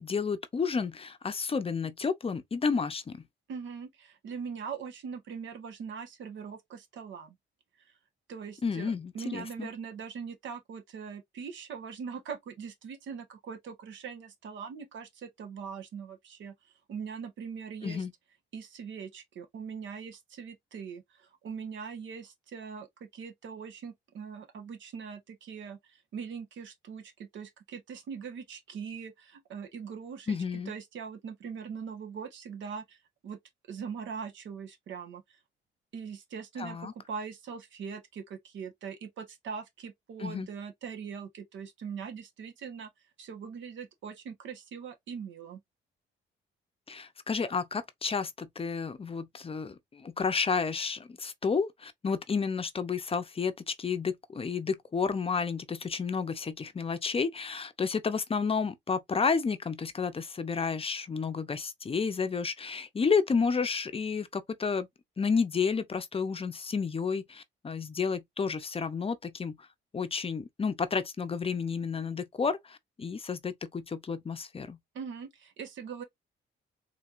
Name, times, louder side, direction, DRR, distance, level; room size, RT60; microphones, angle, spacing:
voice 1, 0.0-3.2 8.6-9.7 17.8-18.1 30.3-30.7 36.6-36.9 40.2-40.5 46.9-64.9 65.2-69.6 69.9-74.8, left 5 dB, 30° left, 0.6 m, -31 dB
voice 2, 3.5-7.4 8.3-16.5 16.9-18.0 18.5-30.4 30.7-33.4 33.7-35.4 35.9-42.9 43.2-45.6 74.9-76.0, right 6 dB, 75° right, 1.1 m, -41 dB
4.2 x 2.8 x 2.5 m
cardioid pair, 90°, 20 cm